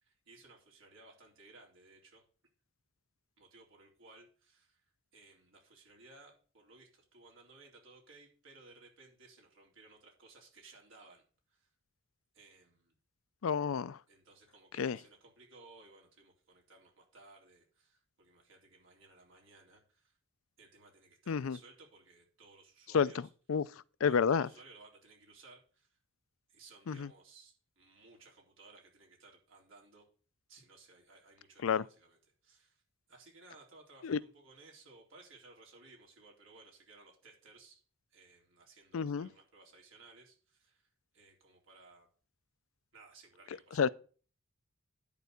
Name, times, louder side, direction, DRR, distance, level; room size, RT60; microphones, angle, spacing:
voice 1, 0.0-2.2 3.4-11.2 11.5-11.7 12.3-12.9 14.1-20.2 20.6-23.3 24.0-26.0 26.5-30.0 30.5-32.2 32.4-32.8 33.1-37.8 38.1-40.9 41.1-42.1 42.9-43.9, right 3 dB, 70° right, 3.8 m, -59 dB
voice 2, 13.4-14.0 14.8-15.0 21.3-21.6 22.9-23.1 23.5-23.6 24.0-24.5 26.9-27.1 31.6-31.8 34.0-34.2 38.9-39.3 43.8-43.9, left 6 dB, 80° left, 0.4 m, -29 dB
10.5 x 4.5 x 8.0 m
head